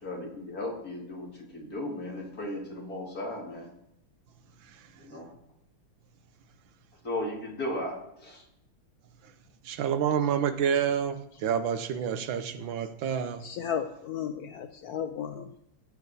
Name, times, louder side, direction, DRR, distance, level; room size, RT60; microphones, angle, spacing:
voice 1, 0.0-3.7 5.0-5.3 7.0-8.4, left 1 dB, 45° left, 2.5 m, -36 dB
voice 2, 9.6-13.5, right 8 dB, 70° right, 1.5 m, -29 dB
voice 3, 13.4-15.6, left 8 dB, 90° left, 0.8 m, -34 dB
16.5 x 7.1 x 4.1 m
omnidirectional pair, 2.3 m